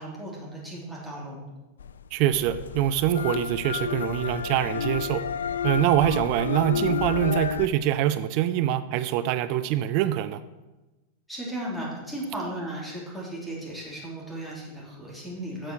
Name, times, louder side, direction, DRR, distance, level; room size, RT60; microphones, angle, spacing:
voice 1, 0.0-1.4 11.3-15.7, right 1 dB, ahead, -7 dB, 3.5 m, -35 dB
sound 1, 1.8-7.7, left 7 dB, 65° left, 0.4 m, -30 dB
voice 2, 2.1-5.2 5.6-10.4, right 12 dB, 45° right, 12 dB, 0.4 m, -24 dB
8.2 x 6.3 x 6.3 m, 1.1 s
figure-of-eight pair, 90°, 0 cm